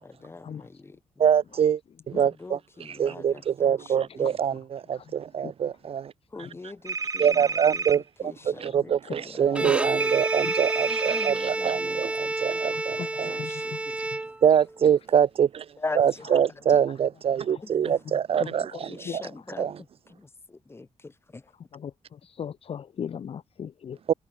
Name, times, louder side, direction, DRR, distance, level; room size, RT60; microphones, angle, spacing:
voice 1, 0.0-1.2 2.1-4.6 6.3-9.7 11.1-12.3 13.0-14.0 14.2-14.3 15.8-16.3 16.7-16.8 17.6-18.0 18.3-21.5, left 3 dB, 20° left, 4.6 m, -42 dB
voice 2, 1.2-1.8 2.1-2.6 3.0-6.1 7.2-8.0 8.6-13.4 14.4-15.7 16.0-19.2 19.6-19.7 24.1-24.2, right 8 dB, 50° right, 0.6 m, -24 dB
sound 1, 6.9-8.0 10.0-11.3, right 4 dB, 25° right, 1.1 m, -30 dB
Bowed string instrument, 9.5-14.7, right 2 dB, 10° right, 0.3 m, -29 dB
voice 3, 12.7-13.8 17.5-17.9 18.4-18.8 19.1-19.2 21.7-24.0, left 8 dB, 50° left, 1.2 m, -38 dB
wide cardioid pair, 155°, 13 cm